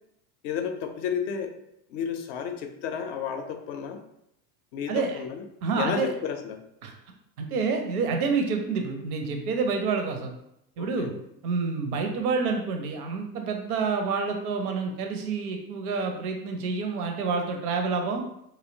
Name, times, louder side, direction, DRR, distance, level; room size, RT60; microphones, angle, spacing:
voice 1, 0.4-1.5 1.9-4.0 4.7-5.4 5.7-6.6 10.8-11.2, left 7 dB, 55° left, 6 dB, 0.5 m, -32 dB
voice 2, 4.9-5.2 5.6-6.1 6.8-6.9 7.4-10.3 10.8-11.1 11.4-18.2, right 4 dB, 75° right, 4 dB, 0.6 m, -28 dB
2.7 x 2.0 x 2.6 m, 0.79 s
hypercardioid pair, 80°, 45 cm